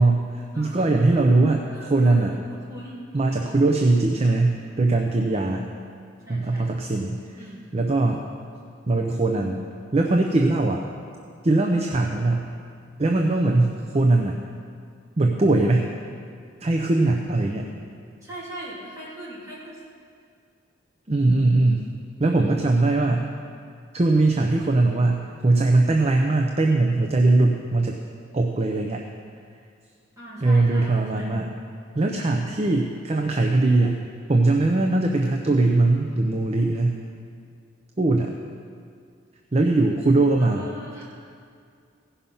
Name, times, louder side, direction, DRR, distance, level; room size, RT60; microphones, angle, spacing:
voice 1, 0.0-2.3 3.1-5.6 6.3-7.2 7.7-8.2 8.9-9.6 9.9-10.8 11.4-12.5 13.0-14.4 15.2-15.9 16.6-17.7 21.1-21.9 22.2-23.3 23.9-28.0 28.3-29.0 30.4-31.5 31.9-34.0 34.3-37.0 38.0-38.3 39.5-40.7, right 2 dB, 35° right, 2 dB, 0.6 m, -21 dB
voice 2, 0.5-1.0 1.7-3.0 6.2-6.7 7.4-7.6 18.2-19.8 22.3-22.6 30.2-31.3 40.4-41.0, right 1 dB, 15° right, -9 dB, 3.4 m, -40 dB
16.5 x 5.6 x 5.5 m, 2.3 s
head